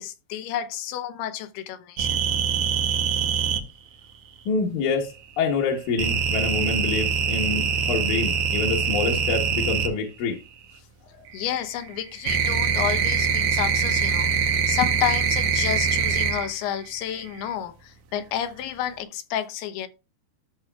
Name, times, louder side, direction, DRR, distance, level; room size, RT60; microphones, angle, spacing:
voice 1, 0.0-2.2 11.3-19.9, left 10 dB, 85° left, 2.8 m, -30 dB
sound 1, 2.0-3.6 6.0-9.9 11.3-16.6 16.9-17.4, right 6 dB, 90° right, 1.6 m, -23 dB
voice 2, 4.5-10.4, left 4 dB, 65° left, 2.0 m, -26 dB
13.0 x 6.2 x 2.3 m
omnidirectional pair, 4.5 m